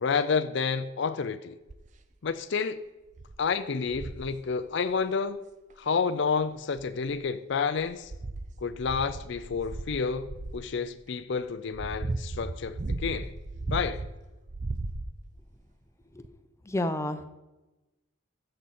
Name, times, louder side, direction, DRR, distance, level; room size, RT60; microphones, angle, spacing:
voice 1, 0.0-1.6 2.2-2.8 3.4-5.4 5.8-8.1 8.6-10.3 10.5-13.3 13.7-14.0, left 5 dB, 60° left, 0.5 m, -29 dB
sound 1, 1.7-2.0 2.6-2.7 3.1-3.4 3.9-4.3 5.7-5.8 6.6-7.3 7.8-10.6 11.4-14.1 14.5-15.4 16.2-16.3, right 2 dB, 35° right, 0.5 m, -36 dB
voice 2, 16.7-17.2, left 1 dB, 15° left, 0.6 m, -29 dB
13.5 x 7.7 x 4.3 m
head